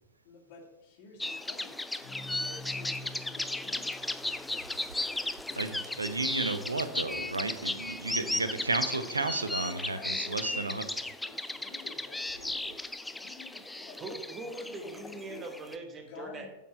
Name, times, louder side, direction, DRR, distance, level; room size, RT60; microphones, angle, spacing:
voice 1, 0.2-1.8 2.2-4.0 5.5-6.4 8.2-8.9 9.6-10.9 11.2-14.0 14.6-15.5 16.1-16.5, left 4 dB, 50° left, 0 dB, 1.9 m, -51 dB
sound 1, 1.2-15.8, left 2 dB, 5° left, 0.3 m, -36 dB
sound 2, 1.9-5.4, left 1 dB, 80° left, 1.6 m, -48 dB
voice 2, 5.6-10.8, right 3 dB, 80° right, 10 dB, 0.6 m, -33 dB
voice 3, 14.0-16.5, right 2 dB, 25° right, 5 dB, 1.2 m, -41 dB
8.1 x 4.5 x 5.6 m, 1.0 s
figure-of-eight pair, 90°, 0 cm